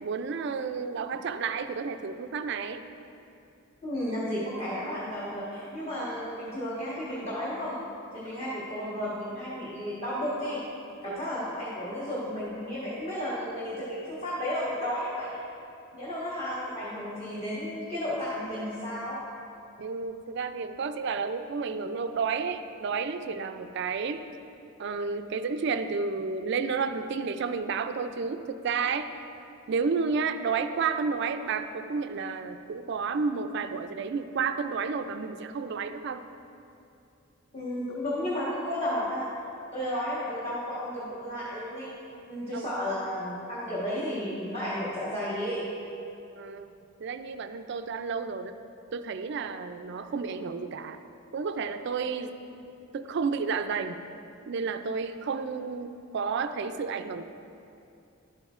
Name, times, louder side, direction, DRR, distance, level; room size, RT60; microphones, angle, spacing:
voice 1, 0.0-2.8 11.1-11.2 19.8-24.2 24.8-29.1 29.7-36.3 42.5-42.7 46.3-46.7 47.0-48.5 48.9-51.0 51.3-52.3 52.9-54.0 54.5-57.2, right 5 dB, 55° right, 9 dB, 0.3 m, -31 dB
voice 2, 3.8-7.8 8.1-10.6 11.0-15.4 15.9-19.2 37.5-39.3 39.7-41.9 42.3-45.7, equal, 30° left, -9 dB, 1.3 m, -33 dB
11.5 x 7.8 x 2.5 m, 2.7 s
head